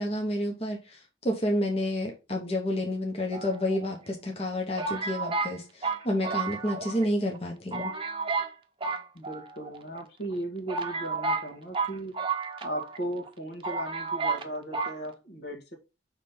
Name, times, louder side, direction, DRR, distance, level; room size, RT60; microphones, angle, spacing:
voice 1, 0.0-7.9, left 1 dB, 35° left, 1.0 m, -30 dB
sound 1, 3.3-4.1 4.8-7.1 7.3-7.4 7.7-8.5 8.8-9.8 10.3-10.4 10.7-13.0 13.3-13.4 13.6-14.5 14.7-15.0, right 4 dB, 30° right, 0.7 m, -31 dB
voice 2, 9.1-12.2 12.6-15.7, right 1 dB, 65° left, 1.7 m, -37 dB
6.0 x 3.3 x 5.4 m
head